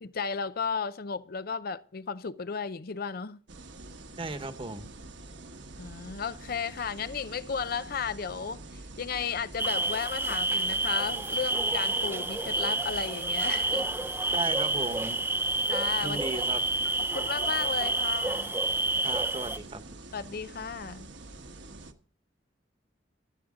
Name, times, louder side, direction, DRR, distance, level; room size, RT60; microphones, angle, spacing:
voice 1, 0.0-3.4 5.8-13.9 15.7-16.2 17.1-18.5 20.1-21.1, left 6 dB, 55° left, 0.6 m, -34 dB
sound 1, 3.5-21.9, right 2 dB, 70° right, 1.3 m, -46 dB
voice 2, 4.2-4.9 14.3-15.2 16.0-16.6 19.0-19.8, right 2 dB, 30° right, 1.2 m, -35 dB
sound 2, 9.6-19.6, right 2 dB, 10° right, 0.6 m, -29 dB
16.0 x 12.0 x 3.8 m
head